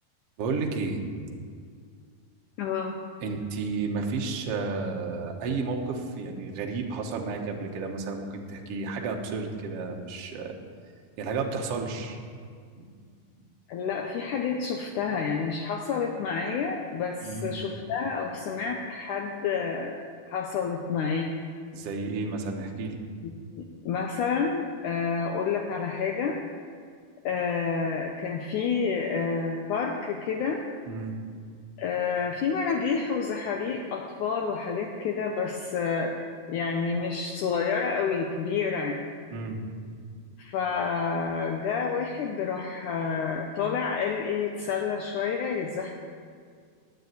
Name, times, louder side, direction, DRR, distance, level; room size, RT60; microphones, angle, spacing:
voice 1, 0.4-1.0 3.2-10.6 11.2-12.2 12.7-12.8 17.2-17.5 21.7-23.0 30.9-31.1 39.3-39.6, right 4 dB, 65° right, 1 dB, 1.5 m, -32 dB
voice 2, 2.6-3.0 13.7-20.0 20.3-21.3 23.5-26.4 27.2-30.6 31.8-36.2 36.5-39.0 40.4-45.9, left 5 dB, 80° left, 2 dB, 1.8 m, -29 dB
9.4 x 9.3 x 9.3 m, 2.1 s
omnidirectional pair, 4.5 m